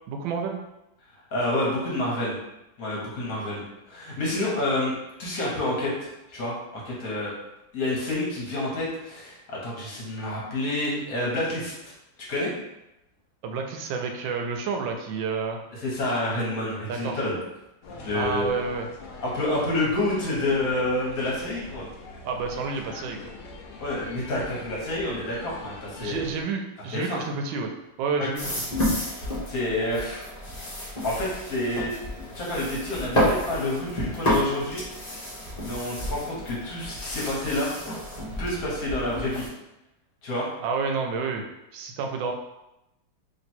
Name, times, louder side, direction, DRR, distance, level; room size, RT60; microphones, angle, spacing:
voice 1, 0.1-0.6 13.4-15.6 16.9-17.2 18.1-18.9 22.2-23.2 26.0-27.7 28.0-28.8 40.6-41.5 41.7-42.3, right 5 dB, 85° right, 4 dB, 1.3 m, -29 dB
voice 2, 1.3-2.4 2.8-4.9 5.2-7.3 7.7-11.9 12.3-12.5 15.8-17.4 18.0-18.4 19.2-21.9 23.8-26.3 26.9-27.2 28.2-28.3 29.5-30.2 31.0-31.9 32.3-34.8 35.6-37.7 38.4-39.4 40.2-40.5, left 1 dB, 55° left, -4 dB, 1.4 m, -28 dB
sound 1, 17.8-26.4, left 2 dB, 75° left, 0.7 m, -43 dB
sound 2, 28.3-39.5, left 1 dB, 25° left, 1.0 m, -30 dB
3.1 x 3.0 x 4.2 m, 0.91 s
omnidirectional pair, 2.0 m